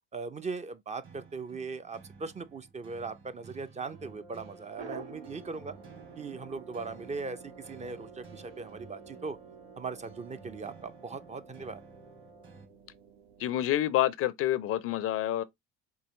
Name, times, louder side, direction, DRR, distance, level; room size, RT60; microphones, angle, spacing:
voice 1, 0.1-5.8 6.2-9.4 9.8-11.8, right 4 dB, 25° right, 0.5 m, -39 dB
sound 1, 1.0-12.7, right 4 dB, 40° right, 1.8 m, -55 dB
sound 2, 3.8-12.8, right 2 dB, 70° right, 1.7 m, -55 dB
sound 3, 4.8-13.8, right 5 dB, 90° right, 0.9 m, -50 dB
voice 2, 13.4-15.4, left 13 dB, 50° left, 0.4 m, -28 dB
4.6 x 2.7 x 3.1 m
hypercardioid pair, 65°, 30 cm